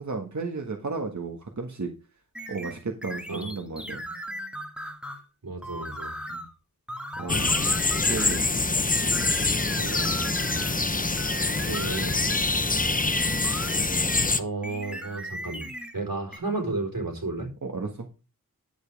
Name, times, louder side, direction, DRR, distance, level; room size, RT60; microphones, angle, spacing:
voice 1, 0.0-1.9 2.5-4.0 6.3-6.4 7.2-7.6 8.0-8.9 10.8-11.0 17.6-18.1, right 4 dB, 50° right, 3 dB, 1.6 m, -34 dB
sound 1, 2.3-5.2 5.6-6.5 6.9-8.5 8.9-10.8 11.2-14.3 14.6-16.0 16.3-16.4, equal, 5° right, 1.9 m, -37 dB
voice 2, 5.4-6.1 7.6-7.8 9.8-10.5 11.7-12.2 14.4-17.5, right 3 dB, 70° right, 2 dB, 4.1 m, -33 dB
sound 2, 7.3-14.4, left 3 dB, 25° left, 0.8 m, -25 dB
11.0 x 7.2 x 3.4 m, 0.30 s
wide cardioid pair, 75°, 35 cm